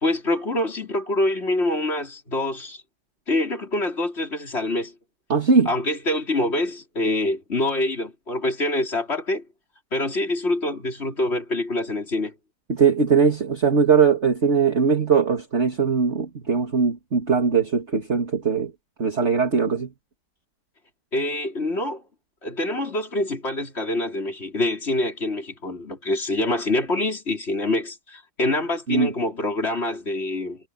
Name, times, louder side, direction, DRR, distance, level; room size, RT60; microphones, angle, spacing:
voice 1, 0.0-2.8 3.3-4.9 5.6-9.4 9.9-12.3 21.1-22.0 22.4-30.6, left 1 dB, 35° left, 4.9 m, -25 dB
voice 2, 5.3-5.7 12.7-18.7 19.0-19.9 28.9-29.1, right 5 dB, 40° right, 2.7 m, -20 dB
omnidirectional pair, 1.9 m